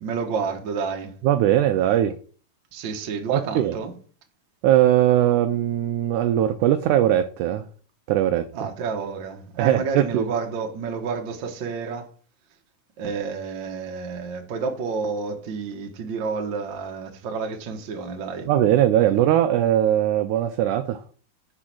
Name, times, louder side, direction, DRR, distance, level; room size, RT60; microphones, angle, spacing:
voice 1, 0.0-1.1 2.7-3.9 8.5-12.1 13.0-18.5, right 5 dB, 65° right, 1.2 m, -30 dB
voice 2, 1.2-2.1 3.3-3.8 4.6-7.7 8.1-8.5 9.6-10.3 18.5-21.0, right 12 dB, 85° right, 1.7 m, -20 dB
6.2 x 4.9 x 5.8 m
omnidirectional pair, 4.0 m